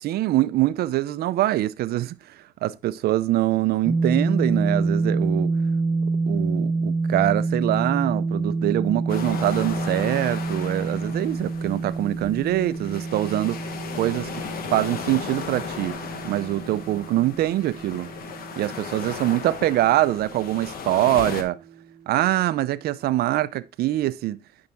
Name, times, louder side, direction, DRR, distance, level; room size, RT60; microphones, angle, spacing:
voice 1, 0.0-2.2 2.6-5.5 6.3-13.6 13.9-14.4 14.7-16.0 16.2-18.1 18.6-21.6 22.1-24.4, right 15 dB, 70° right, 0.6 m, -24 dB
sound 1, 3.8-19.8, right 3 dB, 30° right, 1.2 m, -27 dB
sound 2, 9.1-21.4, left 6 dB, 60° left, 1.4 m, -36 dB
9.3 x 5.9 x 3.5 m
cardioid pair, 110°, 17 cm